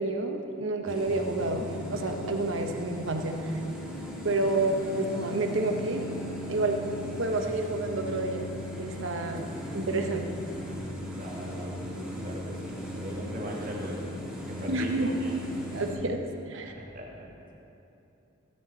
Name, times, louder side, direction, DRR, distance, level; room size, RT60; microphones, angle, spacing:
voice 1, 0.0-3.4 4.2-6.0 6.5-6.8 7.2-8.5 8.8-10.3 14.7-15.1 15.7-16.7, right 2 dB, 65° right, 4 dB, 1.0 m, -29 dB
sound 1, 0.9-15.9, left 1 dB, 5° right, 2.3 m, -38 dB
voice 2, 11.1-14.2 14.5-15.4 16.5-17.5, equal, 40° right, -2 dB, 1.8 m, -40 dB
15.5 x 9.6 x 4.1 m, 2.9 s
head